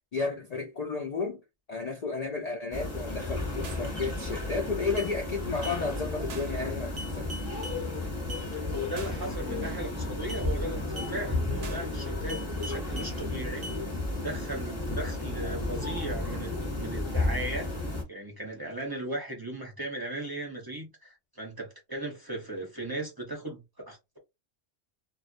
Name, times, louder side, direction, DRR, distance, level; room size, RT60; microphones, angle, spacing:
voice 1, 0.1-1.4 1.7-7.3, left 4 dB, 75° left, 0.3 m, -32 dB
sound 1, 2.7-18.0, left 2 dB, 15° left, 0.7 m, -33 dB
sound 2, 3.6-3.9 4.3-4.6 5.0-5.1 5.6-5.8 6.3-6.6 7.0-7.8 8.3-8.5 9.0-9.3 9.6-9.9 10.3-10.5 11.0-11.1 11.6-11.9 12.3-13.1 13.6-13.8, right 1 dB, 75° right, 1.0 m, -42 dB
voice 2, 8.5-13.7 14.2-24.2, right 1 dB, 25° right, 0.5 m, -37 dB
2.3 x 2.1 x 2.5 m
omnidirectional pair, 1.3 m